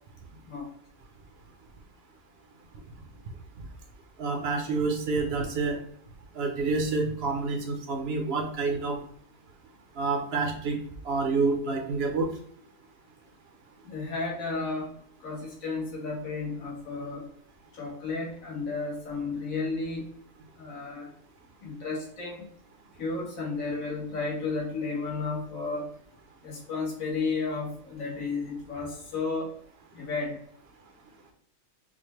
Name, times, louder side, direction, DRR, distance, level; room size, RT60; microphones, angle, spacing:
voice 1, 4.2-5.8 6.3-9.0 10.0-10.8 11.0-12.3, right 3 dB, 55° right, 2 dB, 0.8 m, -28 dB
voice 2, 13.9-14.9 15.2-17.2 17.7-20.1 20.6-21.1 21.6-22.5 23.0-25.9 26.4-29.5 29.9-30.4, left 4 dB, 65° left, -4 dB, 1.7 m, -33 dB
5.1 x 2.2 x 3.1 m, 0.63 s
omnidirectional pair, 1.5 m